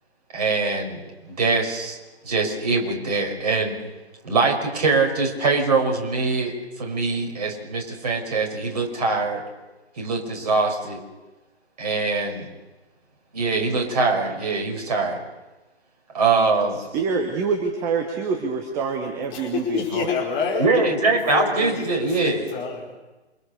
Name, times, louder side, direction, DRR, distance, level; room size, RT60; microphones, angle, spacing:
voice 1, 0.3-2.0 2.2-3.8 4.2-9.4 10.0-11.0 11.8-12.5 13.3-15.2 16.1-16.8 20.6-22.4, right 3 dB, 35° right, 2 dB, 6.1 m, -23 dB
voice 2, 16.7-20.1, right 5 dB, 10° right, 5 dB, 1.2 m, -26 dB
voice 3, 19.3-20.7 21.3-22.9, left 5 dB, 15° left, -1 dB, 4.8 m, -28 dB
28.0 x 27.0 x 6.8 m, 1.1 s
figure-of-eight pair, 145°, 34 cm